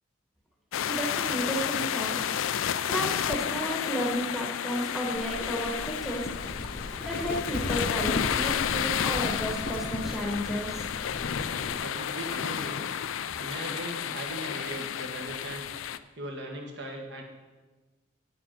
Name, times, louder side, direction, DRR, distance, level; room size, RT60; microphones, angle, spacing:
sound 1, 0.7-16.0, left 9 dB, 90° left, 0.4 m, -31 dB
voice 1, 0.8-2.5 2.9-6.3 7.0-10.9, equal, ahead, 0 dB, 1.2 m, -33 dB
Livestock farm animals working animals, 5.1-11.8, left 2 dB, 45° left, 0.6 m, -36 dB
voice 2, 11.8-12.9 13.4-15.7 16.2-17.2, right 1 dB, 60° right, 1 dB, 1.6 m, -39 dB
9.1 x 7.8 x 5.7 m, 1.2 s
head